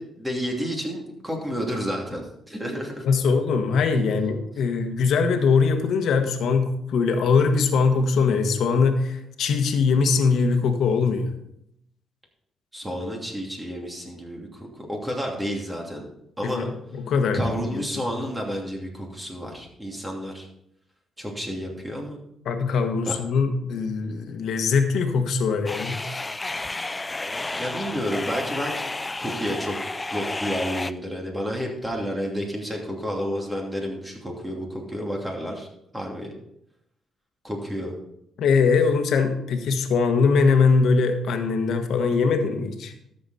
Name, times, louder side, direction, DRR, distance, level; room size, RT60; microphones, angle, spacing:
voice 1, 0.0-3.1 12.7-16.0 16.4-16.7 17.3-20.5 21.2-22.2 23.1-23.2 27.5-28.8 29.2-35.7 35.9-36.3 37.4-37.9, equal, 10° right, 0 dB, 2.8 m, -30 dB
voice 2, 3.0-11.3 16.4-18.0 22.4-26.0 38.4-42.9, left 5 dB, 70° left, 6 dB, 1.4 m, -22 dB
sound 1, 25.7-30.9, left 2 dB, 20° left, 0.4 m, -31 dB
12.5 x 7.0 x 4.2 m, 0.78 s
cardioid pair, 90°, 0 cm